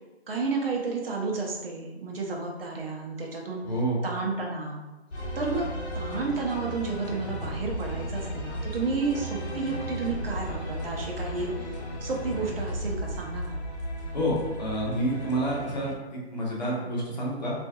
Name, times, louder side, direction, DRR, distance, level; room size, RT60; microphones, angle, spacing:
voice 1, 0.3-3.6 4.0-4.8 5.3-5.7 5.9-11.5 12.0-13.6, right 4 dB, 60° right, -1 dB, 0.7 m, -31 dB
voice 2, 3.6-4.0 14.1-17.5, right 1 dB, 40° left, -5 dB, 0.9 m, -28 dB
sound 1, 5.1-16.0, equal, 75° left, 0.7 m, -35 dB
3.8 x 2.5 x 2.3 m, 1.1 s
hypercardioid pair, 170°, 33 cm